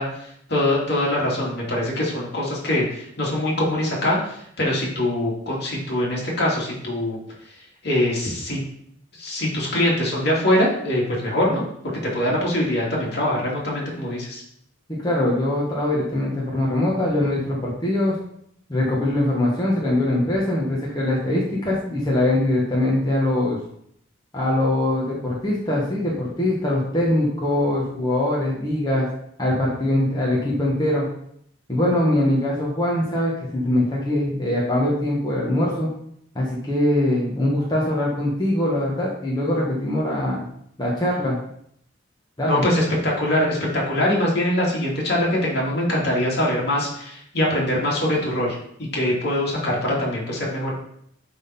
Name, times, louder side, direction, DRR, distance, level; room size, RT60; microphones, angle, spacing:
voice 1, 0.0-7.2 7.8-8.6 9.2-11.6 12.1-14.4 42.5-48.6 48.9-50.7, left 1 dB, 55° left, -3 dB, 2.5 m, -23 dB
voice 2, 14.9-18.1 18.7-23.6 24.3-29.1 29.4-31.1 31.7-35.9 36.3-40.4 40.8-41.4 42.4-42.6, left 1 dB, 20° left, -5 dB, 1.4 m, -22 dB
11.0 x 3.8 x 4.3 m, 0.70 s
head